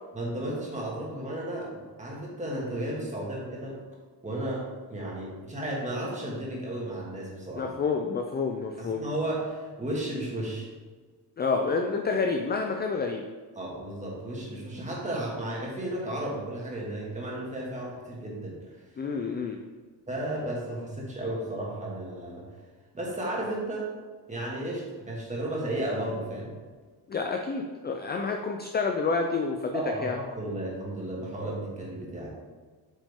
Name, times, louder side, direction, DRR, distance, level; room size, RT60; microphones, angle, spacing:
voice 1, 0.1-3.8 4.2-7.7 8.8-10.7 13.6-18.8 20.1-22.5 22.9-23.9 24.3-26.6 29.7-32.3, right 1 dB, 15° right, -4 dB, 2.1 m, -34 dB
voice 2, 7.5-9.1 11.4-13.2 19.0-19.6 27.1-30.2, left 4 dB, 25° left, 4 dB, 0.4 m, -29 dB
8.5 x 6.0 x 3.7 m, 1.4 s
cardioid pair, 155°, 41 cm